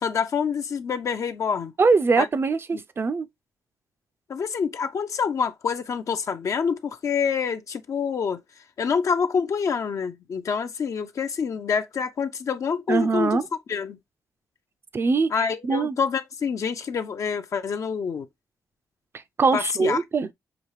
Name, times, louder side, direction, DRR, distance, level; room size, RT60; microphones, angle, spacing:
voice 1, 0.0-1.7 2.2-2.3 4.3-8.4 8.8-13.4 13.7-14.0 15.3-18.3 19.5-20.0, left 6 dB, 55° left, 0.6 m, -26 dB
voice 2, 1.8-3.3 12.9-13.4 14.9-16.0 19.1-20.3, right 4 dB, 35° right, 0.5 m, -22 dB
5.9 x 2.4 x 3.2 m
cardioid pair, 75°, 7 cm